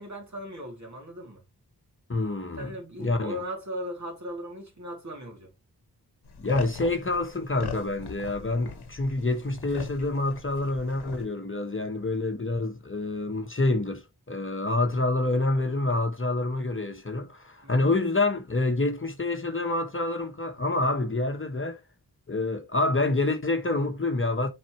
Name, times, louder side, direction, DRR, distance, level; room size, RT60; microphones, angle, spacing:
voice 1, 0.0-1.4 2.6-5.5 17.6-17.9, equal, 45° right, 2.8 m, -38 dB
voice 2, 2.1-2.7 3.0-3.4 6.4-21.8 22.3-24.5, left 2 dB, 35° left, 1.0 m, -27 dB
sound 1, 6.2-11.3, left 6 dB, 85° left, 1.0 m, -40 dB
7.5 x 4.2 x 3.0 m
wide cardioid pair, 70°, 38 cm